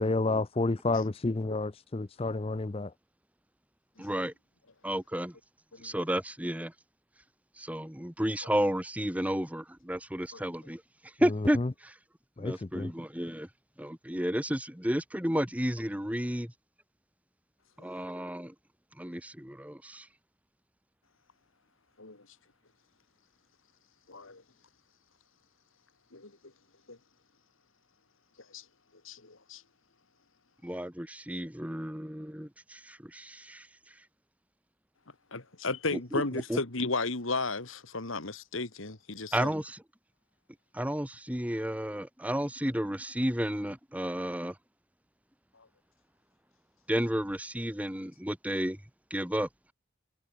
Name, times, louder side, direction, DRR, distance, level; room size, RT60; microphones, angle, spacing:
voice 1, 0.0-2.9 11.5-11.7 12.4-12.9, left 2 dB, 25° left, 0.5 m, -30 dB
voice 2, 4.0-4.3 4.8-5.3 5.8-6.7 7.6-11.9 12.4-13.5 13.8-16.5 17.8-18.5 19.0-20.1 30.6-33.9 35.9-36.2 36.5-36.6 39.3-39.8 40.7-44.6 46.9-48.8 49.1-49.5, equal, 5° right, 1.7 m, -32 dB
voice 3, 5.7-6.0 10.3-10.4 22.0-22.3 24.1-24.4 26.1-26.3 26.9-27.0 28.5-28.6 29.0-29.6 35.3-39.5 45.5-45.7, left 3 dB, 75° left, 2.4 m, -34 dB
head